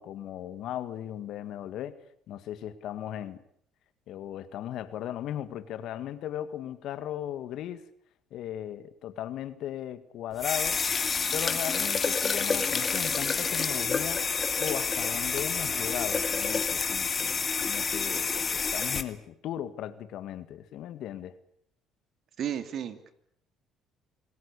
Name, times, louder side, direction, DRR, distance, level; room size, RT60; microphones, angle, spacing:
voice 1, 0.0-2.0 2.3-3.4 4.1-7.9 8.3-10.8 11.3-21.4, left 11 dB, 70° left, 13 dB, 2.0 m, -37 dB
sound 1, 10.4-19.0, left 5 dB, 35° left, 2.3 m, -28 dB
voice 2, 22.4-23.1, right 9 dB, 60° right, 10 dB, 2.9 m, -33 dB
27.5 x 20.0 x 8.4 m, 0.70 s
supercardioid pair, 85°, 0 cm